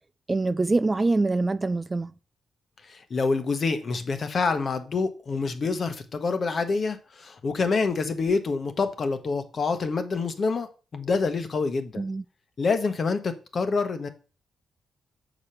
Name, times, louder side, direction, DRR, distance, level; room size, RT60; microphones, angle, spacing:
voice 1, 0.3-2.1 12.0-12.2, right 3 dB, 20° right, 0.3 m, -24 dB
voice 2, 2.9-12.0 12.6-14.1, left 4 dB, 45° left, 1.1 m, -27 dB
7.3 x 5.1 x 5.6 m
cardioid pair, 130°, 0 cm